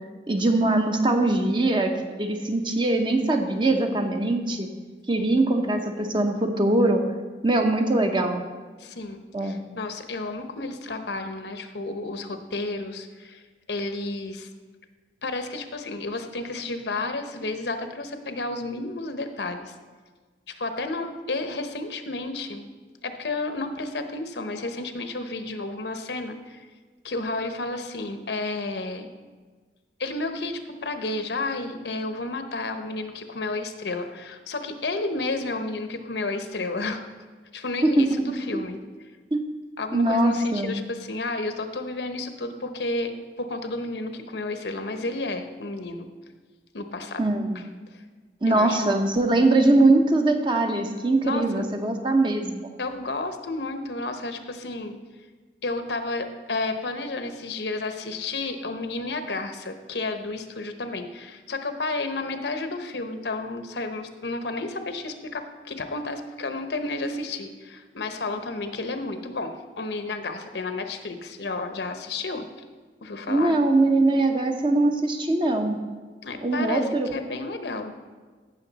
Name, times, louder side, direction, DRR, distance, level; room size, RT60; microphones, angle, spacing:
voice 1, 0.3-1.9 2.2-4.7 5.1-7.0 7.4-8.4 9.3-9.6 37.8-38.2 38.5-38.6 39.3-39.4 39.9-40.7 47.2-47.6 48.4-52.6 73.3-75.8 76.4-77.1, right 2 dB, 25° right, 4 dB, 0.8 m, -22 dB
voice 2, 5.2-5.5 8.8-13.4 13.7-14.5 15.2-19.7 20.5-22.6 23.0-26.7 27.0-29.1 30.0-37.0 37.5-38.8 39.8-43.1 43.4-46.1 46.7-47.2 47.5-47.6 47.9-48.0 48.5-49.0 51.2-51.6 52.8-55.0 55.6-72.5 73.0-73.6 76.2-77.9, left 2 dB, 75° left, 7 dB, 0.9 m, -31 dB
15.0 x 6.4 x 4.0 m, 1.4 s
head